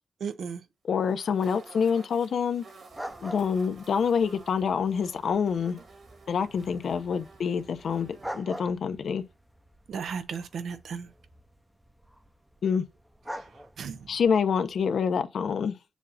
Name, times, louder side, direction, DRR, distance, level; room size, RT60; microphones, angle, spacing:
voice 1, 0.2-0.6 9.9-11.1 13.3-13.4 13.8-14.0, right 6 dB, 85° right, 0.7 m, -35 dB
voice 2, 0.8-2.6 3.2-5.8 6.3-8.1 8.3-9.2 12.6-12.8 14.1-15.7, left 6 dB, 70° left, 0.7 m, -26 dB
sound 1, 1.0-8.4, right 3 dB, 60° right, 2.1 m, -51 dB
sound 2, 2.9-15.1, equal, 5° right, 0.6 m, -46 dB
7.2 x 2.5 x 5.5 m
wide cardioid pair, 140°, 0 cm